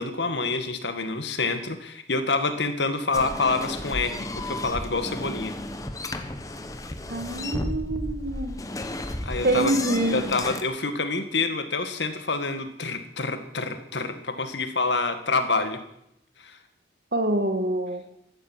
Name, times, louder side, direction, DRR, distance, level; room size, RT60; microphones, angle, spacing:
voice 1, 0.0-5.5 9.2-9.7 10.1-15.8 16.4-16.6, left 3 dB, 75° left, 8 dB, 1.9 m, -27 dB
sound 1, 3.1-10.6, left 1 dB, 20° left, 1.1 m, -33 dB
voice 2, 7.1-8.5 9.4-10.3 17.1-18.0, right 1 dB, 60° right, 7 dB, 2.0 m, -26 dB
14.0 x 12.0 x 7.6 m, 0.78 s
head